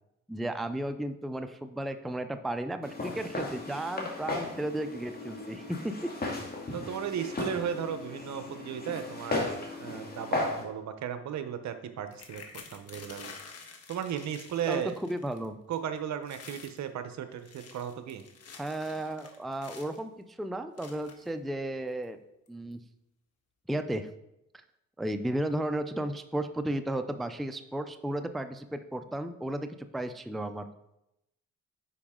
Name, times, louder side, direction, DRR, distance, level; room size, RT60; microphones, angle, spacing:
voice 1, 0.3-6.1 14.7-15.6 18.6-22.2 22.5-22.8 23.7-24.1 25.0-29.7 29.9-30.7, right 1 dB, ahead, 9 dB, 0.4 m, -34 dB
Walk footsteps, 2.8-10.6, left 2 dB, 30° left, 2.0 m, -36 dB
voice 2, 6.7-9.5 9.8-12.4 12.7-13.3 13.9-14.9 15.7-18.2, right 8 dB, 65° right, 9 dB, 0.8 m, -35 dB
sound 1, 12.1-15.5 15.7-16.0 16.2-16.8 17.3-20.0 20.8-21.3 22.0-22.1 22.5-22.7, left 5 dB, 55° left, 1.3 m, -49 dB
9.8 x 4.9 x 3.7 m, 0.87 s
cardioid pair, 90°, 30 cm